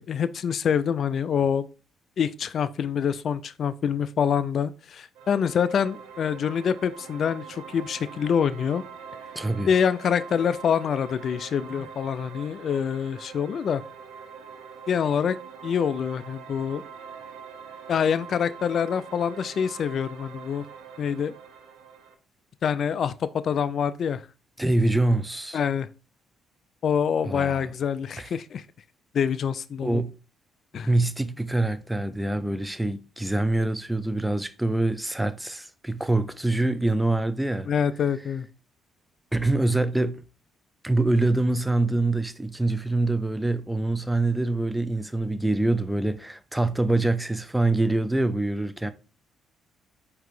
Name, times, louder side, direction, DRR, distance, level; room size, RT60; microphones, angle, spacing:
voice 1, 0.0-1.7 2.2-8.8 9.7-13.8 14.9-15.4 15.6-16.8 17.9-20.7 21.0-21.3 22.6-24.2 25.5-25.9 26.8-28.6 29.1-30.0 30.7-30.9 37.7-38.5, left 7 dB, 55° left, 0.3 m, -26 dB
sound 1, 5.2-22.1, right 6 dB, 80° right, 0.7 m, -44 dB
voice 2, 9.4-9.7 24.6-25.6 27.2-27.6 28.2-28.3 29.8-30.1 30.7-37.7 39.3-40.2 40.8-48.9, right 2 dB, 10° right, 0.5 m, -25 dB
4.7 x 2.9 x 3.6 m
hypercardioid pair, 50°, 0 cm